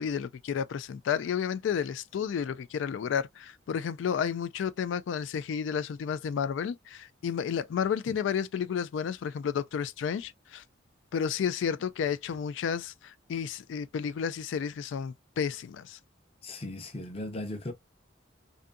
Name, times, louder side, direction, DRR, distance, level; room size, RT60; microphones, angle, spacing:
voice 1, 0.0-10.6 11.1-16.0, left 7 dB, 80° left, 0.3 m, -31 dB
voice 2, 16.4-17.7, left 1 dB, 30° left, 0.6 m, -37 dB
2.6 x 2.5 x 2.2 m
head